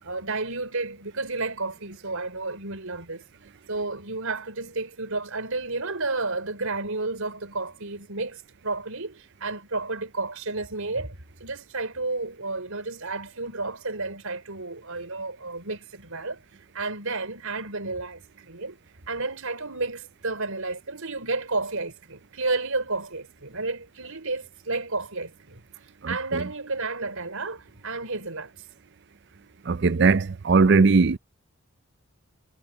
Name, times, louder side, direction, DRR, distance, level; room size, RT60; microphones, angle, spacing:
voice 1, 0.0-3.2 3.7-16.4 16.7-18.8 19.1-25.6 26.1-28.5, right 3 dB, 75° right, 4.5 m, -31 dB
voice 2, 26.0-26.4 29.7-31.2, right 4 dB, 50° right, 0.5 m, -20 dB
head